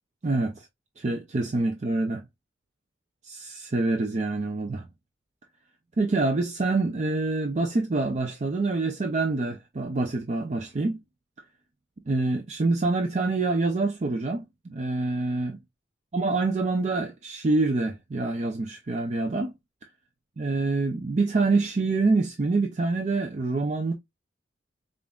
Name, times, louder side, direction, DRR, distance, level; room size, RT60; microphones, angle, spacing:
voice 1, 0.2-0.7 1.0-2.2 3.2-4.8 6.0-11.0 12.1-15.6 16.1-19.5 20.4-23.9, right 3 dB, 40° right, 0.5 m, -26 dB
5.2 x 2.5 x 2.3 m
head